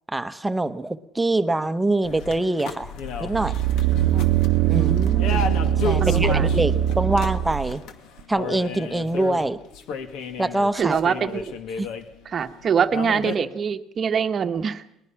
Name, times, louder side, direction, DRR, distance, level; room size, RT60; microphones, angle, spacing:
voice 1, 0.1-2.9 3.2-3.5 4.7-4.9 5.8-7.8 8.3-9.6 10.4-11.0 11.8-11.9, right 2 dB, 10° right, 10 dB, 0.9 m, -24 dB
sound 1, 2.0-12.5 12.8-13.4, left 5 dB, 70° left, 2.2 m, -33 dB
sound 2, 3.3-7.7 8.2-8.3, right 11 dB, 75° right, 0.8 m, -21 dB
voice 2, 4.7-5.4 6.0-6.7 10.8-11.4 12.2-14.8, right 7 dB, 35° right, 9 dB, 1.1 m, -24 dB
22.5 x 20.0 x 5.8 m, 0.83 s
cardioid pair, 150°, 0 cm